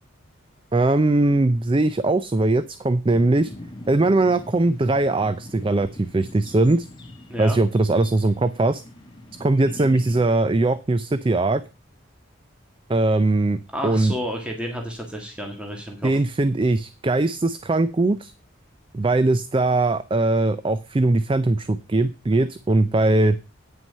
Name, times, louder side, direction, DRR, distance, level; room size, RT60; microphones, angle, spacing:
voice 1, 0.7-3.5 3.9-6.9 7.4-8.8 9.4-11.6 12.9-14.1 16.0-18.3 18.9-23.4, right 2 dB, 25° right, 14 dB, 0.4 m, -20 dB
sound 1, 3.1-10.2, left 1 dB, 20° left, 1.8 m, -42 dB
voice 2, 13.7-16.1, equal, 5° right, 1 dB, 1.7 m, -31 dB
9.4 x 6.0 x 5.4 m, 0.31 s
head